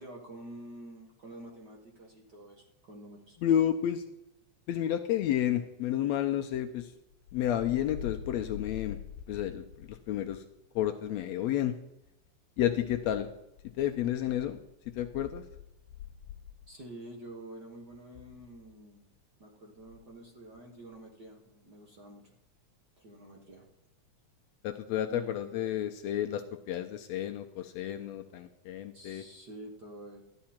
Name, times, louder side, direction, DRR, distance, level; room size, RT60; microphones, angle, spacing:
voice 1, 0.0-3.4 16.7-19.1 19.4-22.3 23.0-23.7 25.1-25.4 28.9-30.2, right 1 dB, 45° right, 0 dB, 1.5 m, -48 dB
voice 2, 3.4-4.0 4.7-6.9 7.3-9.0 9.3-10.4 10.7-11.7 12.6-13.3 13.8-14.6 15.0-15.4 24.6-29.2, left 11 dB, 80° left, 6 dB, 1.7 m, -31 dB
13.0 x 10.5 x 4.3 m, 0.85 s
omnidirectional pair, 3.5 m